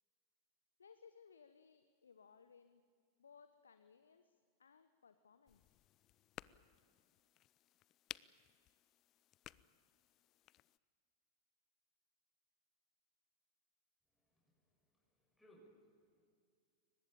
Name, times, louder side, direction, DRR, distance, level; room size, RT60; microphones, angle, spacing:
voice 1, 0.8-2.8 3.2-5.6, left 6 dB, 70° left, 11 dB, 1.0 m, -64 dB
sound 1, 5.5-10.8, left 14 dB, 35° left, 0.5 m, -57 dB
voice 2, 14.1-16.3, equal, 5° left, -3 dB, 6.3 m, -69 dB
23.0 x 20.0 x 8.8 m, 2.2 s
figure-of-eight pair, 90°, 0 cm